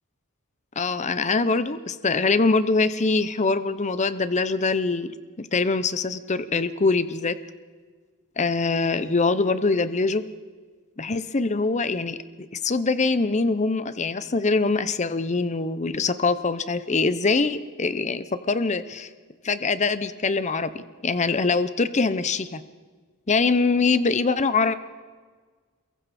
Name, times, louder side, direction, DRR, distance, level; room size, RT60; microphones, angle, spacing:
voice 1, 0.8-7.4 8.4-10.2 11.0-12.2 12.5-19.1 19.4-22.6 23.3-24.7, left 3 dB, 30° left, 13 dB, 0.7 m, -23 dB
28.5 x 22.5 x 4.3 m, 1.5 s
head